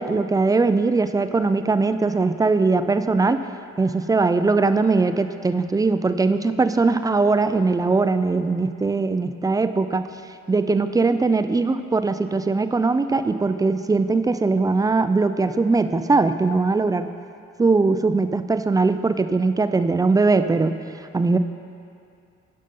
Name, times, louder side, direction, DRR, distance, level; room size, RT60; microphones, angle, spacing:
voice 1, 0.0-3.4 3.8-10.1 10.5-17.1 17.6-20.7 21.1-21.4, right 3 dB, 15° right, 10 dB, 0.3 m, -20 dB
10.5 x 5.5 x 5.3 m, 2.4 s
cardioid pair, 90°, 30 cm